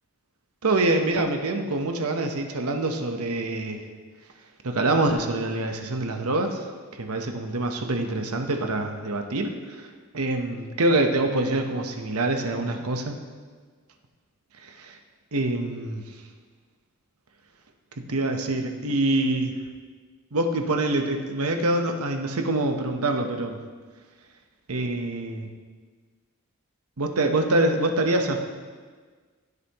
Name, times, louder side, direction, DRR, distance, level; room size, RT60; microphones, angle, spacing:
voice 1, 0.6-3.8 4.6-6.6 6.9-9.8 10.1-13.1 14.6-15.0 15.3-16.0 18.1-19.5 20.3-23.6 24.7-25.5 27.0-28.4, right 2 dB, 80° right, 5 dB, 1.0 m, -25 dB
16.0 x 8.1 x 3.0 m, 1.5 s
head